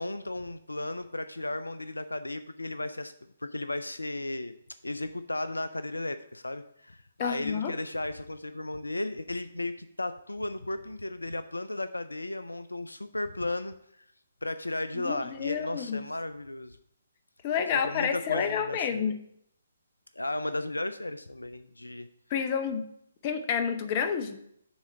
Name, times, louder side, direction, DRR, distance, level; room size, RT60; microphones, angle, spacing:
voice 1, 0.0-3.1 3.4-4.5 4.8-14.0 14.4-16.8 17.7-19.0 20.1-22.1, left 2 dB, 80° left, 12 dB, 0.4 m, -35 dB
voice 2, 7.2-7.7 15.0-16.0 17.4-19.2 22.3-22.9 23.2-24.4, left 7 dB, 30° left, 8 dB, 0.7 m, -29 dB
7.2 x 3.6 x 6.3 m, 0.72 s
figure-of-eight pair, 135°, 0 cm